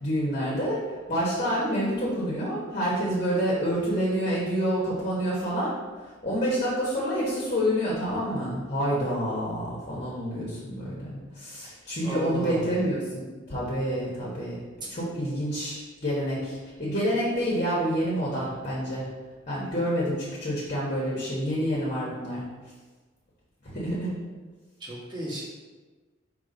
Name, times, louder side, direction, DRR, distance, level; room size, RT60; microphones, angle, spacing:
voice 1, 0.0-5.7 6.2-14.6 14.9-19.0 19.5-22.4 23.6-24.1, equal, 40° left, -6 dB, 1.4 m, -28 dB
voice 2, 12.0-12.9 24.8-25.4, right 1 dB, 25° right, -7 dB, 1.7 m, -34 dB
6.0 x 3.3 x 5.2 m, 1.3 s
head